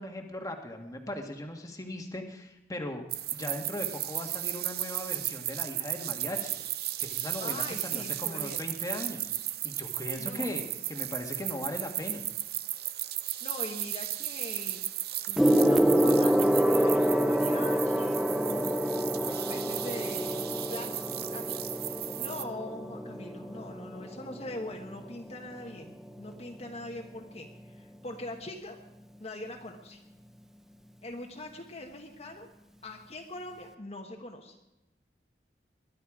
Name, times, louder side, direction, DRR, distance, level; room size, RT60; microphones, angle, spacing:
voice 1, 0.0-3.0 3.3-9.3 9.6-12.2, left 1 dB, 20° left, 3 dB, 1.7 m, -38 dB
sound 1, 3.1-22.4, right 13 dB, 60° right, 0.7 m, -35 dB
voice 2, 7.4-8.6 10.2-10.5 13.4-14.8 15.3-18.8 19.3-21.7 22.2-28.8 29.2-30.0 31.0-32.5 32.8-34.5, left 1 dB, 35° left, 1 dB, 1.4 m, -42 dB
Gong, 15.4-25.1 26.1-26.3, equal, ahead, 0.6 m, -27 dB
22.0 x 11.5 x 5.0 m, 0.93 s
head